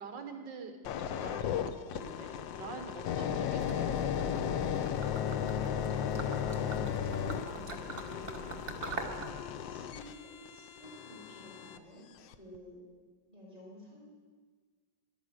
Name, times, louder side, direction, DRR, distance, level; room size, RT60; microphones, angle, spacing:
voice 1, 0.0-4.1, right 5 dB, 65° right, 6 dB, 1.9 m, -46 dB
sound 1, 0.8-11.8 12.3-12.6, left 8 dB, 75° left, 1.4 m, -35 dB
Gurgling / Liquid, 3.5-9.3, right 3 dB, 35° right, 1.1 m, -43 dB
voice 2, 7.4-8.3 9.6-12.8 13.3-14.0, left 1 dB, 20° left, -6 dB, 4.2 m, -52 dB
13.5 x 11.5 x 6.3 m, 1.5 s
omnidirectional pair, 2.1 m